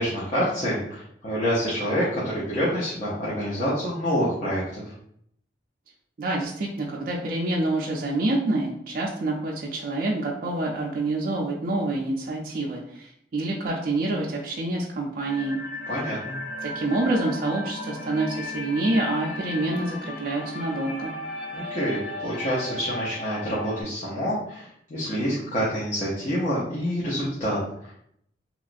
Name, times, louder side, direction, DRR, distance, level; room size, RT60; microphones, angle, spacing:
voice 1, 0.0-4.9 15.9-16.4 21.5-27.9, equal, 40° left, -8 dB, 0.6 m, -27 dB
voice 2, 6.2-15.6 16.6-21.1, right 2 dB, 50° right, -2 dB, 0.4 m, -27 dB
sound 1, 15.2-23.8, left 2 dB, 70° left, 1.3 m, -36 dB
2.9 x 2.4 x 2.5 m, 0.71 s
head